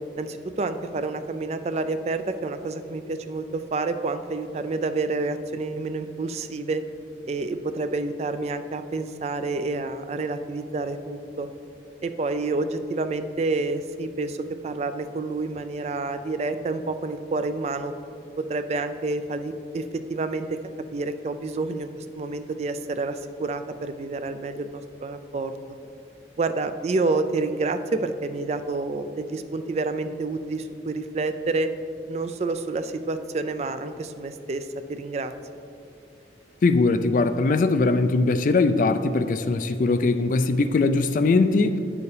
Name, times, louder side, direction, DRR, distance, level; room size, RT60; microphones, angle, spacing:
voice 1, 0.2-6.8 7.3-11.5 12.0-14.4 14.6-17.9 18.4-20.6 20.9-25.5 26.4-31.7 32.1-35.3, right 3 dB, 35° right, 10 dB, 0.3 m, -28 dB
voice 2, 36.6-41.8, left 3 dB, 45° left, 10 dB, 0.3 m, -21 dB
9.7 x 6.9 x 3.3 m, 2.6 s
head